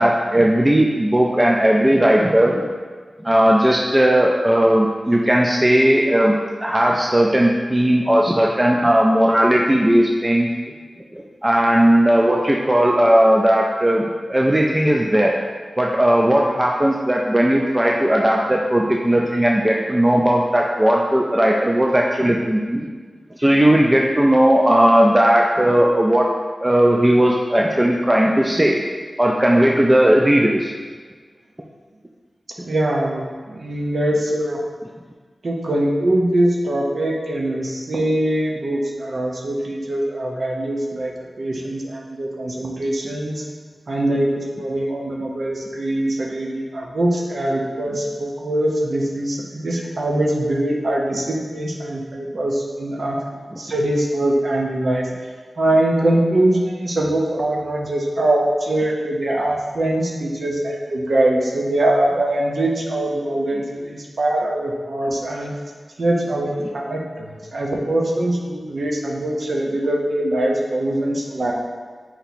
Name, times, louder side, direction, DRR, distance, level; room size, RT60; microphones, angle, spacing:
voice 1, 0.0-2.7 3.2-6.3 6.6-10.5 11.1-15.3 15.8-22.9 23.4-26.3 26.6-28.8 29.2-30.7, right 1 dB, 15° right, -1 dB, 0.3 m, -17 dB
voice 2, 32.6-33.2 33.5-34.6 35.4-43.4 43.9-53.2 53.6-55.1 55.6-65.5 66.0-71.5, right 1 dB, 65° right, -1 dB, 0.7 m, -22 dB
4.4 x 2.8 x 4.0 m, 1.5 s
wide cardioid pair, 85°, 0 cm